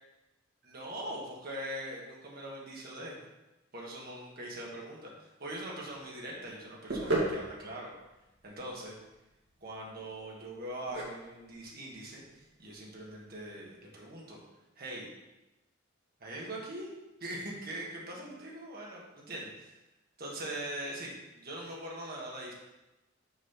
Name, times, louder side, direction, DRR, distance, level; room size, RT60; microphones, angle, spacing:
voice 1, 0.6-3.2 3.7-7.9 8.4-9.0 9.6-14.4 14.8-15.1 16.2-16.9 17.2-19.7 20.2-22.5, right 1 dB, 50° right, -3 dB, 1.6 m, -42 dB
sound 1, 5.6-13.5, right 2 dB, 70° right, 1.9 m, -38 dB
6.2 x 4.3 x 5.7 m, 1.0 s
head